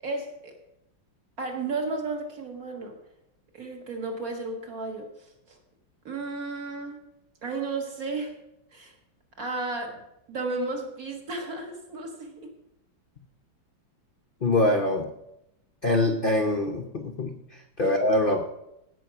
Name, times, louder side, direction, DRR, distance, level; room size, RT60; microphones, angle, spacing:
voice 1, 0.0-0.5 1.4-3.0 3.5-5.1 6.1-7.0 7.4-8.3 8.7-8.9 9.4-10.0 10.3-12.4 17.8-17.9, right 3 dB, 50° right, 2 dB, 2.0 m, -33 dB
voice 2, 14.4-15.1 15.8-18.5, left 1 dB, 55° left, 5 dB, 0.6 m, -24 dB
15.5 x 5.5 x 5.8 m, 0.85 s
omnidirectional pair, 2.1 m